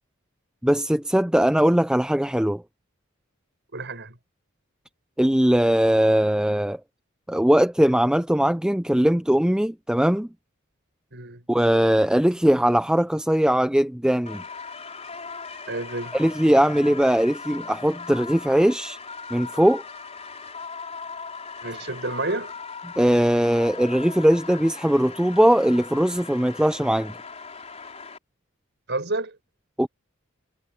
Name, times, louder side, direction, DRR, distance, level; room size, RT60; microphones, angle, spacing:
voice 1, 0.6-2.6 5.2-6.8 7.3-10.3 11.5-14.4 16.1-19.0 19.3-19.8 23.0-27.1 29.8-29.9, equal, 5° right, 0.4 m, -20 dB
voice 2, 3.7-4.2 11.1-11.5 15.7-16.2 21.6-22.6 28.9-29.4, right 2 dB, 55° right, 7.6 m, -30 dB
sound 1, 14.3-28.2, left 5 dB, 30° left, 4.4 m, -39 dB
head